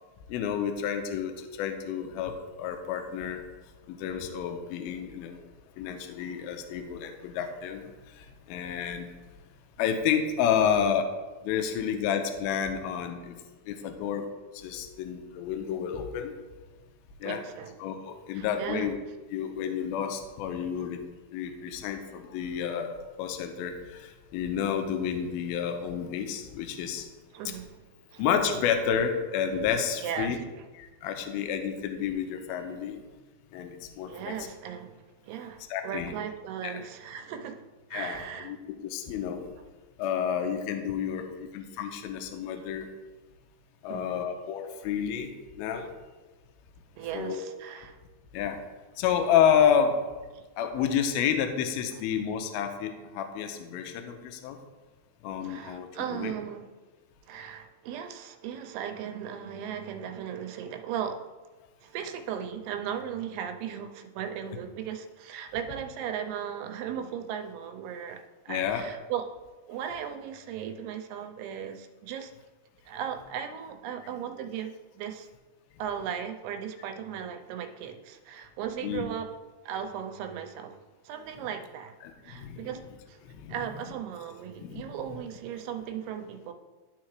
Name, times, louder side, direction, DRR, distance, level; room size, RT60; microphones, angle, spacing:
voice 1, 0.3-3.4 3.9-5.4 5.8-9.1 9.8-11.0 11.4-13.4 13.7-14.3 14.5-16.3 17.2-17.4 17.8-19.0 19.3-21.0 21.3-22.9 23.2-27.1 28.2-30.4 30.8-33.0 33.5-34.4 35.7-36.1 36.6-36.8 37.9-38.2 38.4-39.4 40.0-42.9 43.8-45.9 47.1-47.4 48.3-48.6 49.0-50.0 50.6-54.6 55.2-56.3 68.5-68.9 78.8-79.0 82.0-82.7 83.3-83.6 84.6-84.9, left 8 dB, 85° left, 5 dB, 2.4 m, -30 dB
voice 2, 17.2-17.7 18.3-18.9 27.3-27.9 28.1-28.2 30.0-30.3 34.1-37.6 37.9-38.5 43.9-44.3 45.8-45.9 47.0-48.0 50.3-50.4 55.4-56.7 57.3-61.3 61.8-69.2 69.7-72.3 72.9-75.3 75.8-79.3 79.6-80.8 81.0-82.0 82.2-82.8 83.1-83.2 83.5-86.5, right 8 dB, 85° right, 6 dB, 2.6 m, -37 dB
13.0 x 4.6 x 3.2 m, 1.3 s
omnidirectional pair, 4.5 m